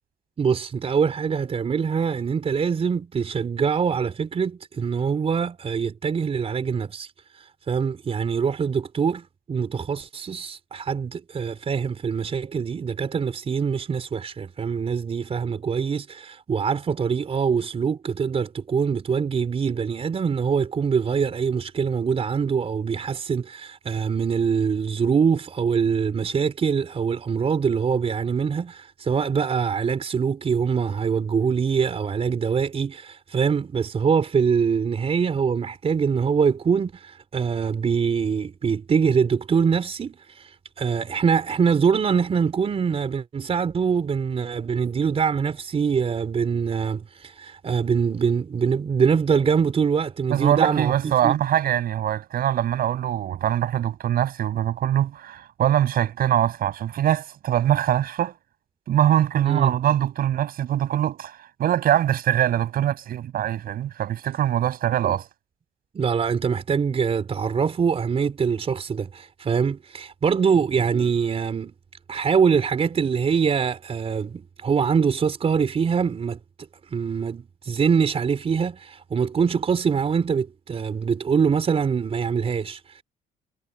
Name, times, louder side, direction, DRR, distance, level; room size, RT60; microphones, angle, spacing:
voice 1, 0.4-50.9 51.2-51.4 59.4-59.7 65.0-65.2 65.9-71.7 72.1-76.4 76.9-83.0, right 6 dB, 35° right, 4.4 m, -24 dB
voice 2, 50.3-58.3 58.9-65.3, right 11 dB, 60° right, 6.8 m, -23 dB
cardioid pair, 110°, 17 cm